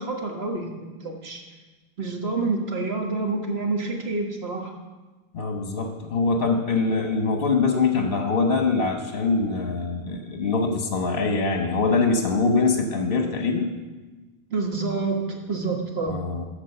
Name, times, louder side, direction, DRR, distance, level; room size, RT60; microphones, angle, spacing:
voice 1, 0.0-1.4 2.0-4.7 14.5-16.2, right 3 dB, 80° right, 1 dB, 1.7 m, -28 dB
voice 2, 5.3-13.7 16.1-16.4, left 4 dB, 65° left, 4 dB, 1.2 m, -23 dB
13.5 x 4.9 x 6.7 m, 1.2 s
omnidirectional pair, 1.0 m